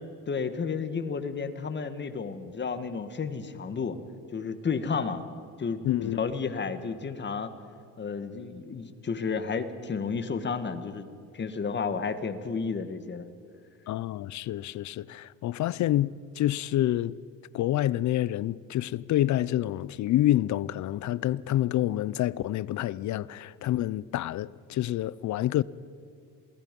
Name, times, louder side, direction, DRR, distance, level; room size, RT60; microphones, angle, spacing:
voice 1, 0.3-4.0 4.3-5.2 5.6-7.5 8.0-11.1 11.3-13.3, left 5 dB, 30° left, 1.6 m, -32 dB
voice 2, 5.8-6.2 13.9-17.2 17.5-25.6, left 13 dB, 55° left, 0.6 m, -28 dB
27.5 x 18.5 x 5.3 m
cardioid pair, 100°, 34 cm